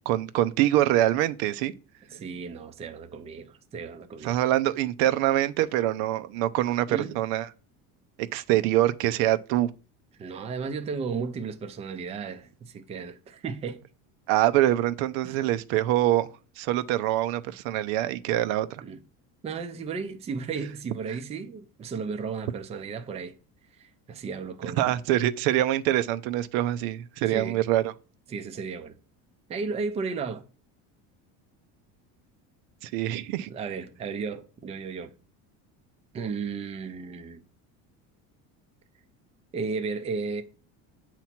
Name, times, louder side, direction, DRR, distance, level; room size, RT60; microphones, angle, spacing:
voice 1, 0.0-1.7 4.2-7.5 8.3-9.7 14.3-16.3 16.6-18.8 24.8-27.9 32.8-33.5, right 14 dB, 85° right, 0.6 m, -24 dB
voice 2, 2.1-4.4 6.9-7.1 10.2-13.8 15.2-15.4 18.8-19.0 19.4-23.3 23.8-25.0 27.3-27.6 28.3-28.9 29.5-30.4 33.5-35.1 36.1-37.4 39.5-40.4, right 5 dB, 20° right, 0.4 m, -34 dB
8.0 x 3.0 x 5.8 m
cardioid pair, 155°, 37 cm